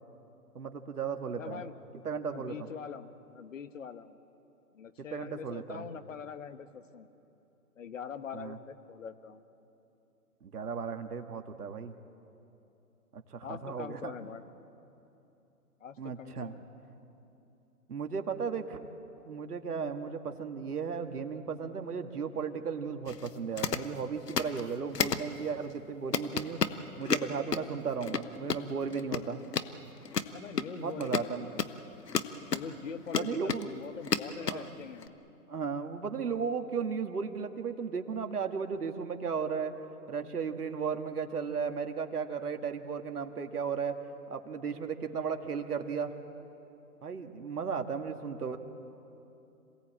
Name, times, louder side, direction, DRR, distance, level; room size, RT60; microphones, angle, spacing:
voice 1, 0.6-1.6 2.0-2.6 5.0-5.8 8.3-8.6 10.4-11.9 13.1-14.1 16.0-16.5 17.9-18.9 19.3-29.4 30.8-31.5 33.1-33.7 34.4-34.7 35.5-39.7 40.1-44.0 44.3-46.1 47.0-48.6, right 6 dB, 75° right, 6 dB, 1.9 m, -35 dB
voice 2, 1.3-1.7 2.3-4.2 4.7-7.1 7.8-9.4 13.4-14.4 15.8-16.7 30.3-31.6 32.5-35.1, left 7 dB, 55° left, 11 dB, 1.4 m, -43 dB
sound 1, 23.1-23.3 23.6-23.8 24.3-24.6 24.9-25.3 25.7-25.8 26.1-27.6 28.0-28.6 28.9-29.2 29.5-29.7 30.0-32.6 33.1-33.7 34.0-34.6 35.0-35.1, left 6 dB, 90° left, 1.3 m, -32 dB
27.0 x 18.0 x 8.7 m, 2.9 s
hypercardioid pair, 150°, 46 cm